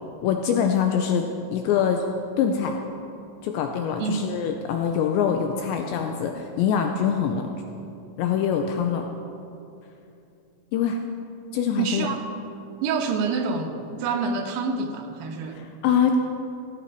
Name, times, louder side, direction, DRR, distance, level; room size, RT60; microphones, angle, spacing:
voice 1, 0.2-2.0 2.4-2.7 3.4-7.5 8.2-9.1 10.7-11.0 11.5-12.1 15.5-16.2, left 7 dB, 85° left, 4 dB, 2.7 m, -24 dB
voice 2, 11.8-12.2 12.8-15.6, right 4 dB, 85° right, 4 dB, 3.7 m, -27 dB
16.0 x 14.0 x 4.7 m, 2.7 s
omnidirectional pair, 5.7 m